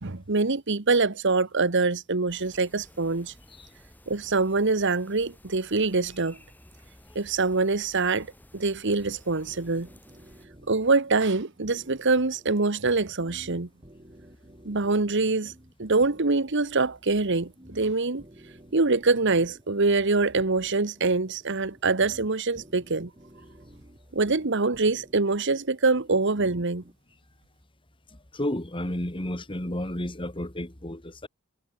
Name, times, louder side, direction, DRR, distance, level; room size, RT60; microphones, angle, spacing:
voice 1, 0.0-3.3 4.1-6.4 7.1-8.3 8.5-9.9 10.7-13.7 14.6-15.5 15.8-18.2 18.7-23.1 24.1-26.8, right 3 dB, 60° right, 1.3 m, -24 dB
sound 1, 2.3-10.5, left 1 dB, 10° left, 6.0 m, -54 dB
sound 2, 9.5-26.9, equal, 25° right, 3.8 m, -53 dB
voice 2, 28.1-31.3, left 1 dB, 25° left, 2.6 m, -32 dB
head